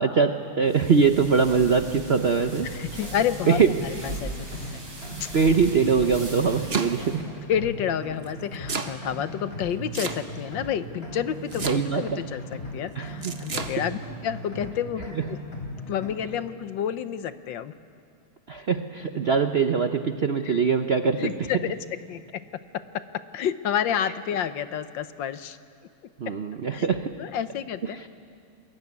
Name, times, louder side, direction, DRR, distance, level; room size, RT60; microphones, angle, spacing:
voice 1, 0.0-3.0 3.5-3.7 5.3-7.3 11.6-12.2 12.9-13.4 18.5-21.3 26.2-27.1 27.9-28.1, right 5 dB, 85° right, 8 dB, 0.5 m, -23 dB
sound 1, 0.6-7.2, right 2 dB, 55° right, 6.2 m, -40 dB
sound 2, 2.1-16.2, equal, 30° left, 4.5 m, -38 dB
voice 2, 2.7-4.3 4.7-4.8 5.2-5.3 7.5-15.4 15.9-17.7 20.4-20.6 21.2-25.6 26.3-26.4 26.7-26.9 27.2-28.1, left 9 dB, 65° left, 12 dB, 1.4 m, -30 dB
Domestic sounds home sounds, 6.3-7.2 8.2-9.0 9.9-10.5 11.5-12.1 13.2-13.7, right 4 dB, 35° right, 1.2 m, -32 dB
26.5 x 22.0 x 9.5 m, 2.4 s
omnidirectional pair, 2.3 m